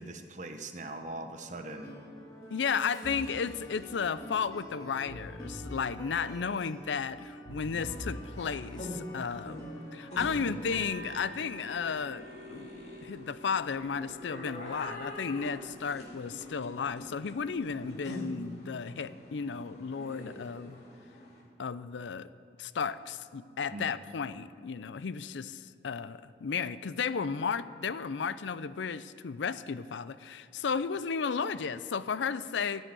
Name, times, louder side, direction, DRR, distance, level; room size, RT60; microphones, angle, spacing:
voice 1, 0.0-1.9 23.7-23.9, right 2 dB, 40° right, 6 dB, 1.0 m, -41 dB
sound 1, 1.7-11.1, equal, 20° left, 1.9 m, -45 dB
voice 2, 2.5-12.2 12.5-12.7 13.0-20.8 21.6-22.3 22.6-32.8, left 6 dB, 85° left, 15 dB, 0.5 m, -34 dB
sound 2, 7.7-21.4, equal, 40° left, 2.4 m, -45 dB
sound 3, 10.7-18.2, right 1 dB, 75° right, 0.9 m, -51 dB
14.5 x 6.4 x 9.4 m, 2.4 s
head